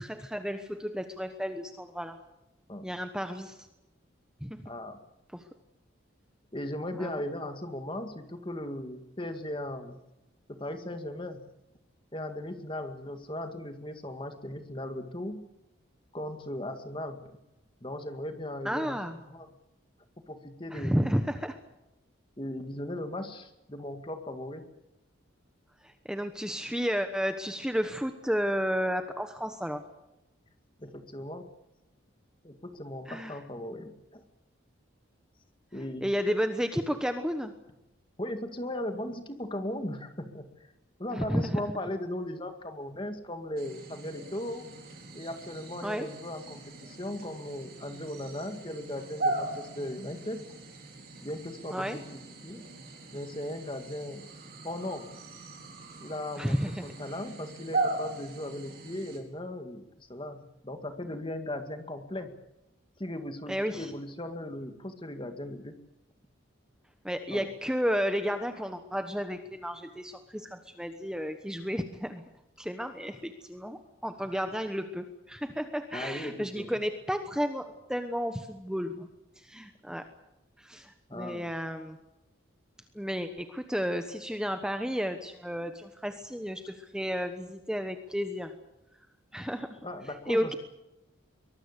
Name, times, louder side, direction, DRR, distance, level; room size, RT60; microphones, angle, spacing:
voice 1, 0.0-2.2 2.8-3.6 4.4-4.6 5.3-5.4 6.9-7.2 18.6-19.2 20.7-21.6 25.8-29.8 33.1-33.4 36.0-37.5 41.1-41.6 45.8-46.1 51.7-52.0 56.4-56.8 63.5-63.9 67.0-72.2 72.6-79.1 79.4-80.0 80.6-82.0 82.9-88.5 89.3-89.8 90.3-90.5, equal, 5° right, 7 dB, 1.1 m, -32 dB
voice 2, 4.7-5.0 6.5-10.0 10.5-11.4 12.1-15.4 16.1-17.4 17.8-19.0 19.3-19.5 20.3-21.1 22.4-24.6 30.8-31.4 32.4-34.2 35.7-36.1 38.2-40.5 41.0-44.7 45.2-50.4 51.2-52.7 53.1-54.3 54.6-55.1 56.0-62.3 63.0-65.8 67.3-67.5 74.2-74.4 75.9-76.8 81.1-81.5 89.8-90.5, left 1 dB, 25° left, 7 dB, 2.0 m, -37 dB
sound 1, 43.6-59.2, right 2 dB, 45° right, 4.8 m, -39 dB
23.0 x 20.0 x 8.2 m, 0.95 s
head